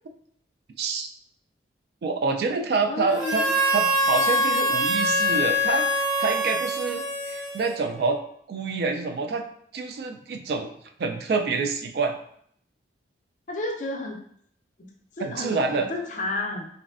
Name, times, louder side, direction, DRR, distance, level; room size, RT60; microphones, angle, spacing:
voice 1, 0.8-1.1 2.0-3.5 3.7-5.9 6.2-8.2 8.5-9.5 9.7-10.7 11.0-12.2 15.2-15.9, right 4 dB, 60° right, 4 dB, 0.3 m, -27 dB
voice 2, 2.9-3.5 13.5-14.2 15.2-16.7, left 2 dB, 45° left, 2 dB, 0.4 m, -31 dB
Harmonica, 3.2-8.0, equal, 5° right, 0.7 m, -24 dB
3.1 x 2.5 x 2.4 m, 0.66 s
head